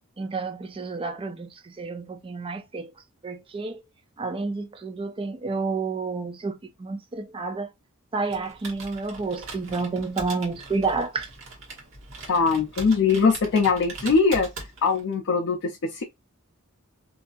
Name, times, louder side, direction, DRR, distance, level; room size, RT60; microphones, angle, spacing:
voice 1, 0.2-2.9 3.2-3.8 4.2-7.7 8.1-11.3, right 4 dB, 25° right, 0.4 m, -30 dB
Computer keyboard, 8.2-15.1, right 3 dB, 65° right, 1.1 m, -41 dB
voice 2, 12.3-14.5 14.8-16.0, left 4 dB, 60° left, 0.5 m, -21 dB
2.7 x 2.3 x 2.5 m
head